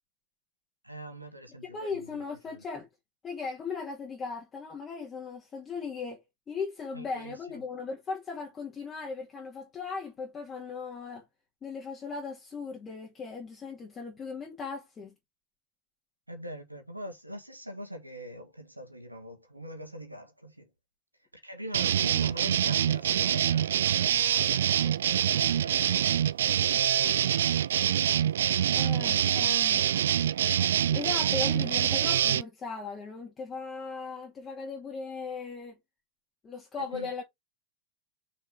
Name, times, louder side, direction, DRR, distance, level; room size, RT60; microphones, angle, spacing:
voice 1, 0.8-2.6 6.9-7.6 16.3-20.7 21.2-27.3 28.7-28.9 29.3-30.0 36.8-37.1, equal, 85° right, 1.9 m, -44 dB
voice 2, 1.7-2.9 3.2-11.2 11.6-15.1 28.7-29.8 30.9-35.8 36.4-37.2, left 4 dB, 20° left, 2.3 m, -38 dB
sound 1, 21.7-32.4, right 10 dB, 60° right, 0.3 m, -25 dB
5.9 x 5.1 x 3.6 m
figure-of-eight pair, 90°, 0 cm